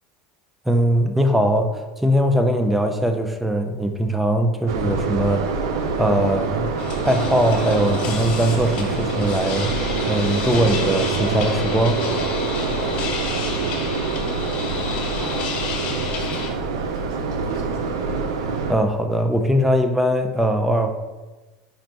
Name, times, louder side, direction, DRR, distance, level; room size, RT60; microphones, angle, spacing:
voice 1, 0.7-5.6 6.0-6.7 7.0-12.0 18.7-20.9, equal, 5° right, 5 dB, 0.4 m, -21 dB
sound 1, 4.7-18.7, right 4 dB, 85° right, 0.4 m, -25 dB
sound 2, 6.8-16.5, left 5 dB, 50° left, 0.6 m, -30 dB
voice 2, 14.0-14.5 15.2-18.1, equal, 35° right, -5 dB, 1.5 m, -42 dB
4.2 x 2.1 x 4.0 m, 1.2 s
supercardioid pair, 120°, 3 cm